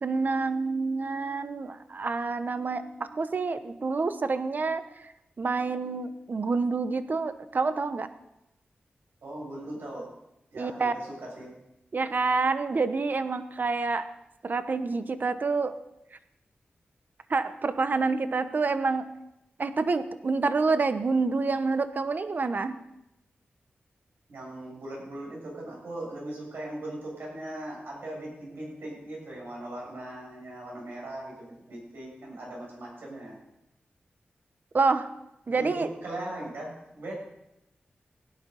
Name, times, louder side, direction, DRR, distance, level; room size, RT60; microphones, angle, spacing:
voice 1, 0.0-5.1 5.4-8.1 10.5-10.9 11.9-14.0 14.4-15.7 17.3-19.1 19.6-22.8 34.7-35.1 35.5-35.9, right 4 dB, 55° right, 11 dB, 1.0 m, -27 dB
voice 2, 9.2-10.1 10.5-11.5 24.3-33.4 35.5-37.1, right 1 dB, 90° right, -3 dB, 7.5 m, -39 dB
17.0 x 11.0 x 5.5 m, 0.87 s
wide cardioid pair, 80°, 4 cm